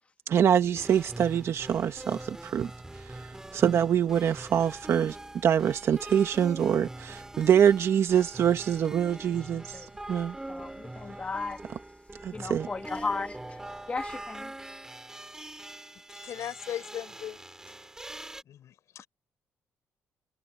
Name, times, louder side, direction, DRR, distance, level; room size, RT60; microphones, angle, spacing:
voice 1, 0.3-2.7 3.5-5.2 5.4-10.3 12.2-12.7, right 9 dB, 60° right, 1.6 m, -25 dB
sound 1, 0.7-18.4, right 1 dB, 10° right, 3.4 m, -43 dB
voice 2, 10.5-11.6 12.3-13.6 13.9-14.5, left 4 dB, 30° left, 2.2 m, -35 dB
voice 3, 16.2-17.4 18.5-19.1, left 10 dB, 70° left, 6.6 m, -38 dB
cardioid pair, 105°, 5 cm